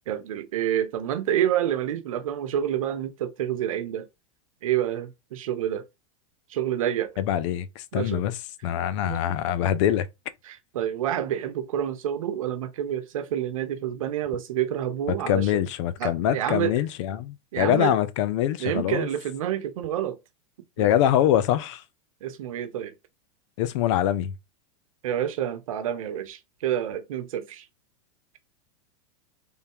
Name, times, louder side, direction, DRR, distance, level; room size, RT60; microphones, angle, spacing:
voice 1, 0.1-4.1 4.6-5.8 6.5-7.1 7.9-8.2 9.0-9.2 10.4-15.5 16.0-16.7 17.5-17.9 18.6-20.2 20.8-20.9 22.2-22.9 25.0-27.7, right 10 dB, 80° right, 0.9 m, -28 dB
voice 2, 7.2-8.4 8.6-10.1 15.3-19.1 20.8-21.8 23.6-24.3, left 11 dB, 60° left, 0.6 m, -24 dB
3.6 x 3.3 x 3.0 m
supercardioid pair, 130°, 17 cm